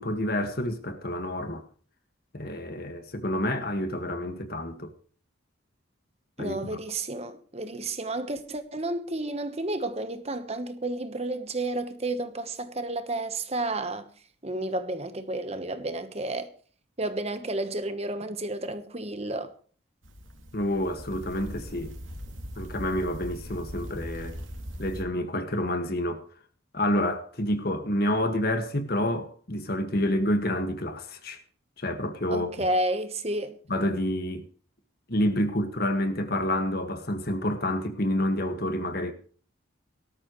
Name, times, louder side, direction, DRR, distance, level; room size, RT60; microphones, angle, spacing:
voice 1, 0.0-1.6 2.3-4.9 6.4-6.8 20.5-21.9 22.6-24.4 24.8-26.3 26.7-31.4 31.8-32.5 33.7-34.5 35.1-39.1, left 1 dB, 50° left, 1.9 m, -28 dB
voice 2, 6.4-14.1 14.4-16.5 17.0-19.5 32.3-33.6, right 2 dB, 30° right, 1.2 m, -31 dB
sound 1, 20.0-25.0, equal, 80° right, 2.9 m, -40 dB
18.0 x 13.5 x 3.2 m
head